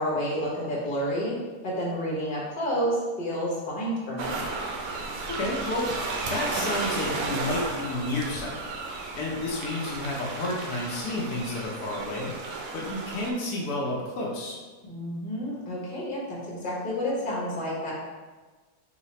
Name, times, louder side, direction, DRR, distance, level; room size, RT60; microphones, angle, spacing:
voice 1, 0.0-1.3 1.6-4.4 14.8-17.9, equal, 35° left, -5 dB, 1.0 m, -30 dB
sound 1, 4.2-13.3, right 3 dB, 80° right, 1.1 m, -33 dB
voice 2, 5.3-8.7 9.1-14.6, left 2 dB, 75° left, -3 dB, 1.2 m, -31 dB
4.0 x 2.4 x 4.0 m, 1.3 s
omnidirectional pair, 1.6 m